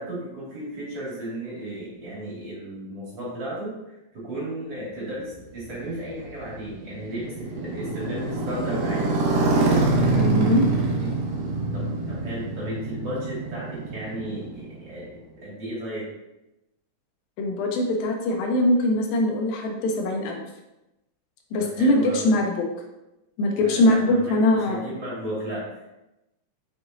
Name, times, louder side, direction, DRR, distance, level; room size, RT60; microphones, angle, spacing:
voice 1, 0.0-9.4 10.7-11.2 11.7-16.0 21.6-22.3 23.6-25.9, right 1 dB, 45° right, -7 dB, 2.7 m, -35 dB
Motorcycle, 5.3-15.3, right 3 dB, 65° right, 1.8 m, -25 dB
voice 2, 10.2-10.6 17.4-20.4 21.5-22.7 23.4-24.9, left 1 dB, 80° left, 2 dB, 2.5 m, -22 dB
6.8 x 6.0 x 2.6 m, 0.94 s
omnidirectional pair, 4.1 m